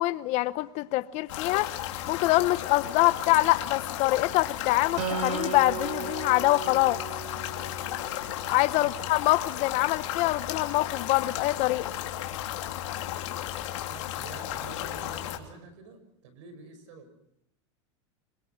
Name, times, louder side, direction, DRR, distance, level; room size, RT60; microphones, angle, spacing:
voice 1, 0.0-1.7 2.1-7.0 8.5-11.9, left 18 dB, 45° left, 0.9 m, -25 dB
sound 1, 1.3-15.4, left 12 dB, 75° left, 3.0 m, -34 dB
Acoustic guitar, 5.0-8.4, right 8 dB, 50° right, 4.2 m, -36 dB
voice 2, 13.8-17.1, right 4 dB, 75° right, 6.2 m, -48 dB
26.0 x 24.0 x 5.9 m
supercardioid pair, 135°, 16 cm